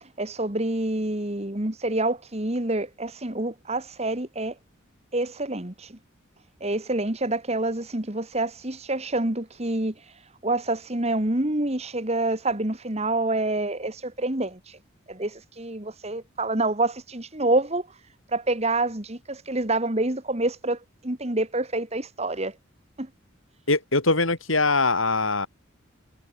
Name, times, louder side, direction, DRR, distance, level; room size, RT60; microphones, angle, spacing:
voice 1, 0.0-4.5 5.1-6.0 6.6-9.9 10.4-14.8 15.1-17.9 18.3-20.8 21.0-22.5 23.0-23.1, right 2 dB, 30° right, 2.0 m, -27 dB
voice 2, 23.7-25.5, left 3 dB, 85° left, 8.0 m, -22 dB
head